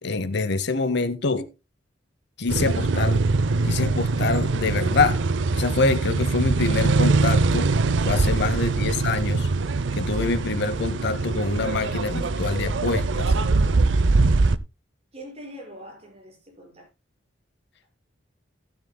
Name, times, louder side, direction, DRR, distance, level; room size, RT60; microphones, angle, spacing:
voice 1, 0.0-1.5 2.4-3.2 3.6-5.2 5.5-7.7 8.0-9.5 9.9-13.3, left 3 dB, 60° left, 0.8 m, -25 dB
sound 1, 2.5-14.6, right 3 dB, 70° right, 0.5 m, -22 dB
voice 2, 15.1-16.9, equal, 35° right, 5.7 m, -43 dB
16.0 x 9.8 x 2.2 m
head